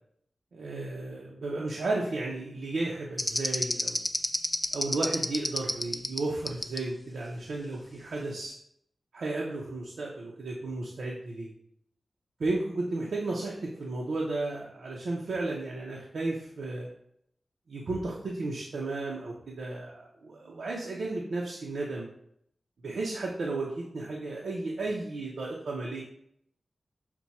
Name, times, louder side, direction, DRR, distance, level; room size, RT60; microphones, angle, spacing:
voice 1, 0.5-4.0 4.7-8.5 9.1-11.5 12.4-16.9 17.7-22.1 22.8-26.0, right 2 dB, 90° right, -3 dB, 0.6 m, -33 dB
sound 1, 3.2-6.2 6.5-6.8, left 1 dB, 25° left, 0.4 m, -27 dB
5.9 x 2.2 x 4.1 m, 0.72 s
wide cardioid pair, 85°, 0 cm